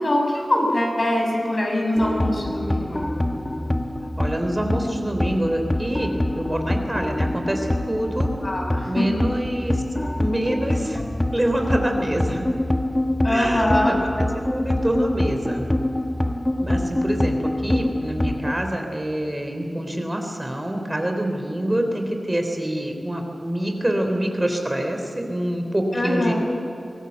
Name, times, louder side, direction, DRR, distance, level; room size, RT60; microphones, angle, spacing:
voice 1, 0.0-3.1 8.4-9.2 13.2-14.0 25.9-26.3, left 1 dB, 50° left, 0 dB, 7.0 m, -23 dB
sound 1, 2.0-18.6, left 1 dB, 20° left, 1.3 m, -25 dB
voice 2, 4.2-8.3 8.9-9.8 10.2-11.0 11.3-12.5 13.3-14.1 14.5-15.6 16.6-17.4 17.6-26.3, right 1 dB, 25° right, 4 dB, 3.5 m, -26 dB
24.5 x 17.5 x 8.1 m, 2.6 s
cardioid pair, 45°, 0 cm